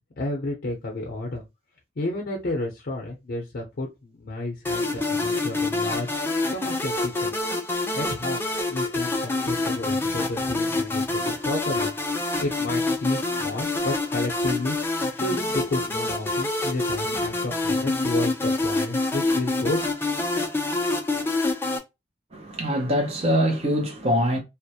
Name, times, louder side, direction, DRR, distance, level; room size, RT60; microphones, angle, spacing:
voice 1, 0.2-1.4 2.0-6.1 6.5-7.3 7.9-11.9 12.4-14.8 15.2-19.8, left 2 dB, 60° left, 0.5 m, -31 dB
sound 1, 4.6-21.8, left 2 dB, 15° left, 0.3 m, -26 dB
voice 2, 22.3-24.4, equal, 35° right, 0.6 m, -23 dB
2.2 x 2.0 x 2.7 m
head